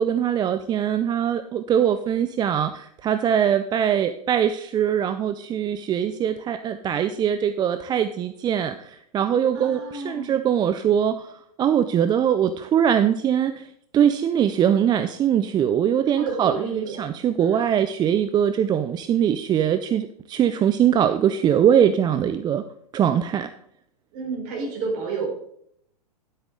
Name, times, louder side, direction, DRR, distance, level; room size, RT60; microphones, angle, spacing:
voice 1, 0.0-11.3 11.6-13.7 13.9-22.6 22.9-23.5, right 9 dB, 20° right, 11 dB, 0.5 m, -22 dB
voice 2, 9.5-10.3 16.2-17.0 17.5-17.7 24.1-25.3, right 4 dB, 45° right, 1 dB, 4.3 m, -30 dB
11.5 x 8.3 x 3.7 m, 0.69 s
hypercardioid pair, 105°, 20 cm